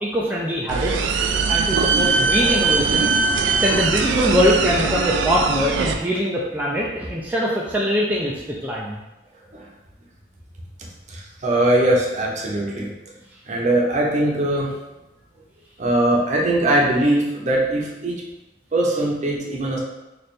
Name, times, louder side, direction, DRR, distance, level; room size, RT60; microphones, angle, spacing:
voice 1, 0.0-1.1 1.5-9.0, equal, 10° right, -5 dB, 0.4 m, -23 dB
sound 1, 0.7-5.9, right 4 dB, 80° right, 0.4 m, -21 dB
voice 2, 11.1-12.9 13.5-14.8 15.8-18.2 18.7-19.8, right 1 dB, 40° right, -2 dB, 0.8 m, -21 dB
3.2 x 2.5 x 4.2 m, 1.0 s
head